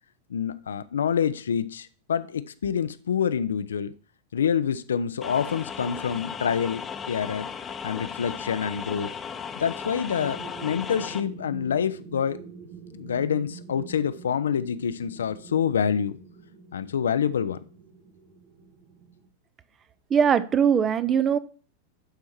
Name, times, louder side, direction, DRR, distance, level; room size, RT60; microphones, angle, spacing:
voice 1, 0.3-3.9 4.3-7.5 7.8-9.1 9.6-12.4 12.9-16.2 16.7-17.6, left 7 dB, 65° left, 0.5 m, -27 dB
sound 1, 5.2-11.2, left 7 dB, 20° left, 0.8 m, -36 dB
sound 2, 10.2-19.3, right 4 dB, 40° right, 2.4 m, -46 dB
voice 2, 20.1-21.4, right 7 dB, 25° right, 0.6 m, -21 dB
11.5 x 4.6 x 4.4 m
figure-of-eight pair, 90°, 0 cm